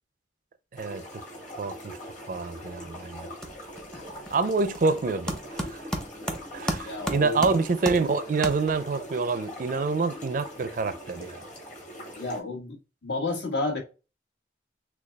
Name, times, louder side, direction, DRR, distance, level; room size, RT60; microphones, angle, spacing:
voice 1, 0.7-1.0 1.6-2.0 2.3-3.3 4.3-5.8 6.5-11.5, right 4 dB, 50° right, 0.4 m, -27 dB
sound 1, 0.8-12.4, equal, 40° left, 1.6 m, -42 dB
sound 2, 2.5-2.9 3.2-9.1, equal, 5° left, 0.6 m, -35 dB
voice 2, 6.8-7.5 12.2-13.8, left 3 dB, 70° left, 1.5 m, -31 dB
6.3 x 2.3 x 2.2 m
head